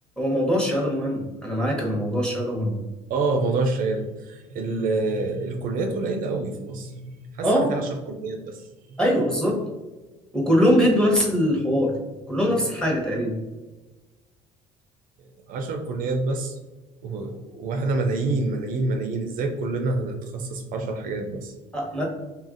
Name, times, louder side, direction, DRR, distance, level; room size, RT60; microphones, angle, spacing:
voice 1, 0.2-2.8 7.4-7.8 9.0-9.7 10.3-12.0 12.3-13.3 21.7-22.0, equal, 5° left, -2 dB, 1.0 m, -22 dB
voice 2, 3.1-8.6 8.9-9.0 15.5-16.6 17.0-21.5, right 3 dB, 60° right, 4 dB, 0.4 m, -27 dB
2.8 x 2.5 x 2.5 m, 1.2 s
supercardioid pair, 75°, 16 cm